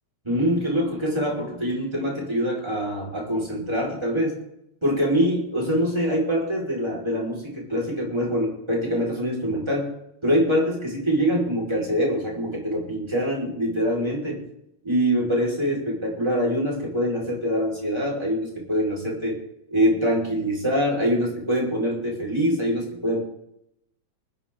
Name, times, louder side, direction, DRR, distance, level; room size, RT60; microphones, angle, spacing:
voice 1, 0.2-4.4 4.8-9.9 10.2-14.4 14.8-19.4 19.7-23.2, equal, 10° right, -3 dB, 4.9 m, -24 dB
20.0 x 12.0 x 3.8 m, 0.77 s
omnidirectional pair, 3.5 m